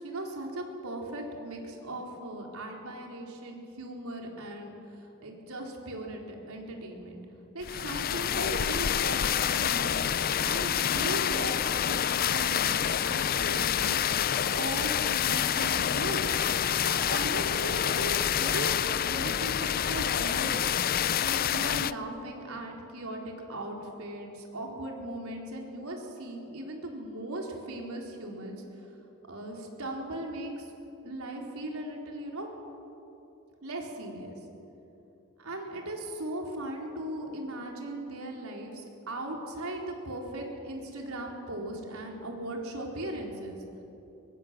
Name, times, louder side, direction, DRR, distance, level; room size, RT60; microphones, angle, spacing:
voice 1, 0.0-7.2 7.5-16.3 16.8-20.8 21.2-28.9 29.3-30.7 31.0-32.5 33.6-34.4 35.4-43.8, right 1 dB, 75° right, 0 dB, 4.1 m, -38 dB
sound 1, 7.6-21.9, left 9 dB, 40° left, 0.4 m, -27 dB
23.0 x 23.0 x 7.5 m, 2.9 s
head